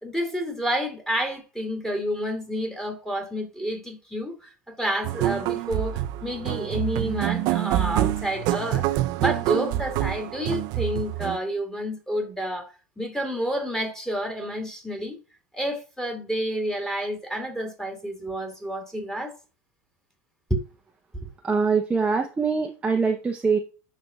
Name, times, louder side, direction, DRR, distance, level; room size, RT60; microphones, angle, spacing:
voice 1, 0.0-8.9 9.2-15.2 15.5-19.3 20.5-20.6, equal, 5° left, 2.3 m, -29 dB
sound 1, 5.0-11.4, right 14 dB, 55° right, 0.5 m, -26 dB
voice 2, 21.4-23.6, right 5 dB, 15° right, 0.7 m, -23 dB
11.0 x 4.2 x 2.3 m
supercardioid pair, 125°, 8 cm